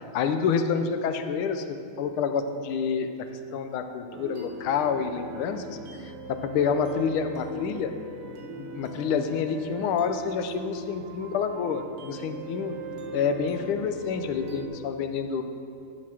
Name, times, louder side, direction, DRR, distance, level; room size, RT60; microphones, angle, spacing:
voice 1, 0.0-3.1 3.5-7.9 8.6-12.8 13.1-15.4, left 6 dB, 80° left, 8 dB, 1.5 m, -28 dB
sound 1, 4.1-14.7, right 3 dB, 60° right, 0.8 m, -40 dB
11.0 x 4.1 x 7.4 m, 2.4 s
omnidirectional pair, 2.4 m